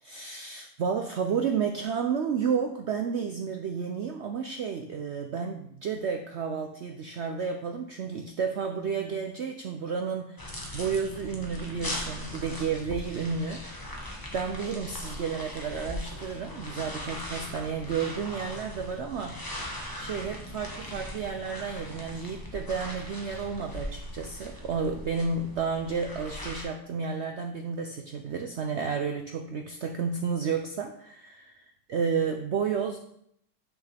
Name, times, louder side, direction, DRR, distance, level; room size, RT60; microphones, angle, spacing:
voice 1, 0.0-13.7 14.3-19.4 20.0-33.0, right 6 dB, 80° right, 5 dB, 0.6 m, -31 dB
sound 1, 10.4-26.6, left 1 dB, 15° left, 1.0 m, -39 dB
8.0 x 6.2 x 3.4 m, 0.71 s
omnidirectional pair, 1.8 m